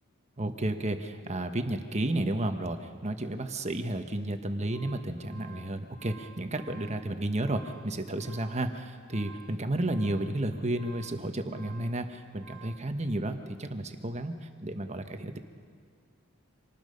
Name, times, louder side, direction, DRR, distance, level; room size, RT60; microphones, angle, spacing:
voice 1, 0.4-15.4, right 1 dB, 35° right, 7 dB, 1.2 m, -32 dB
sound 1, 4.4-12.9, right 4 dB, 55° right, 2.1 m, -54 dB
26.0 x 19.0 x 5.4 m, 2.2 s
head